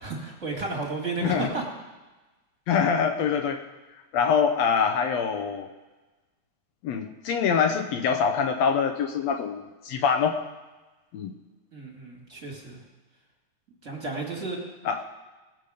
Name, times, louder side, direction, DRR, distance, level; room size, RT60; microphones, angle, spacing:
voice 1, 0.0-1.6 11.7-12.8 13.8-14.6, right 3 dB, 25° right, -1 dB, 2.2 m, -32 dB
voice 2, 2.7-3.6 4.1-5.7 6.8-10.4 11.1-11.3 14.8-15.0, left 6 dB, 70° left, 6 dB, 1.7 m, -24 dB
19.5 x 7.4 x 5.0 m, 1.2 s
omnidirectional pair, 3.5 m